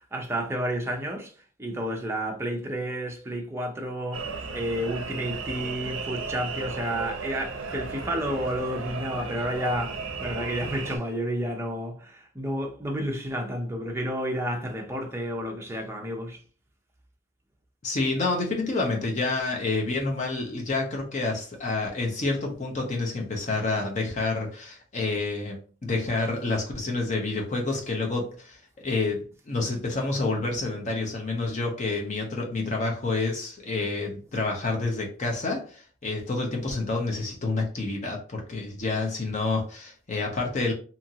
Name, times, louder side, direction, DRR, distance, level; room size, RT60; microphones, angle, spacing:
voice 1, 0.0-16.4, equal, 10° right, 0.5 m, -31 dB
sound 1, 4.1-11.0, right 4 dB, 65° right, 0.5 m, -35 dB
voice 2, 17.8-40.7, left 3 dB, 35° left, 0.5 m, -28 dB
2.8 x 2.5 x 2.7 m
head